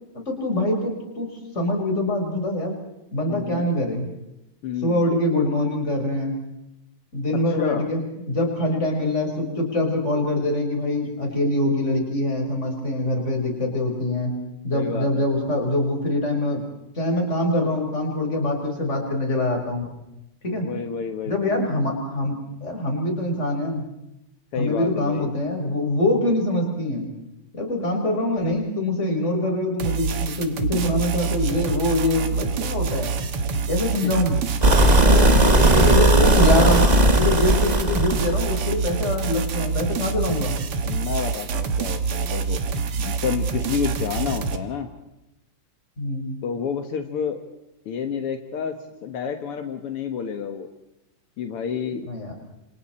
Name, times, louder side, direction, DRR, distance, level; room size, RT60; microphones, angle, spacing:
voice 1, 0.1-2.8 3.1-4.1 4.8-6.4 7.1-8.0 8.3-14.3 14.6-16.6 16.9-19.9 20.4-20.7 21.2-23.9 24.5-27.1 27.5-33.1 33.7-34.4 34.9-35.3 35.6-40.5 46.0-46.4 52.1-52.3, left 1 dB, 30° left, 2 dB, 5.0 m, -24 dB
voice 2, 3.3-3.7 4.6-5.1 7.6-7.9 14.7-15.2 20.5-21.7 24.5-25.3 34.0-34.1 35.1-36.7 40.9-42.6 43.0-44.9 46.4-47.4 47.9-50.7 51.4-52.1, left 7 dB, 80° left, 7 dB, 2.3 m, -29 dB
sound 1, 29.8-44.6, right 5 dB, 80° right, 2.4 m, -26 dB
sound 2, 34.6-38.6, right 1 dB, 20° right, 1.3 m, -17 dB
28.5 x 27.0 x 4.3 m, 0.89 s
omnidirectional pair, 2.4 m